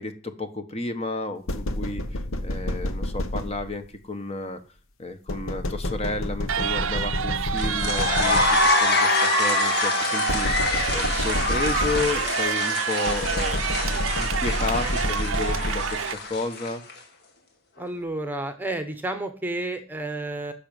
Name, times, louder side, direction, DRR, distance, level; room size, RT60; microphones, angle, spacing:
voice 1, 0.0-4.6 5.0-13.6 13.9-16.8, left 2 dB, 30° left, 8 dB, 1.2 m, -32 dB
sound 1, 1.5-3.9 5.3-8.9 10.3-12.5 13.1-16.1, left 1 dB, 75° left, 1.0 m, -29 dB
sound 2, 6.5-16.1, right 7 dB, 70° right, 0.6 m, -28 dB
sound 3, 7.6-16.9, left 2 dB, 50° left, 2.0 m, -25 dB
voice 2, 17.8-20.5, right 2 dB, 10° right, 8 dB, 1.0 m, -31 dB
10.0 x 6.7 x 9.0 m, 0.40 s
head